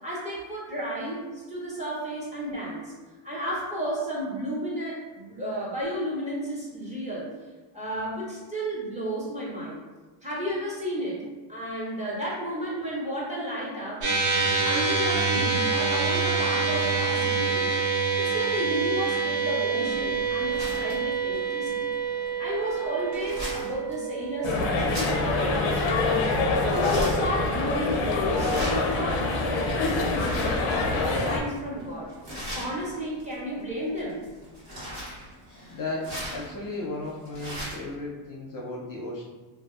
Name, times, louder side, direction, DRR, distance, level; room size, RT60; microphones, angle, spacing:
voice 1, 0.0-2.9 3.2-7.3 7.7-9.8 10.2-14.1 14.3-17.8 18.2-21.9 22.4-25.7 26.2-32.1 32.5-34.2, equal, 15° right, -7 dB, 0.6 m, -33 dB
sound 1, 14.0-26.5, right 4 dB, 70° right, 1.0 m, -27 dB
sound 2, 19.8-37.9, equal, 40° right, 1.1 m, -40 dB
sound 3, 24.4-31.4, left 3 dB, 85° left, 0.7 m, -25 dB
voice 2, 35.7-39.2, left 2 dB, 45° left, -3 dB, 0.5 m, -35 dB
2.6 x 2.2 x 2.3 m, 1.3 s
cardioid pair, 125°, 46 cm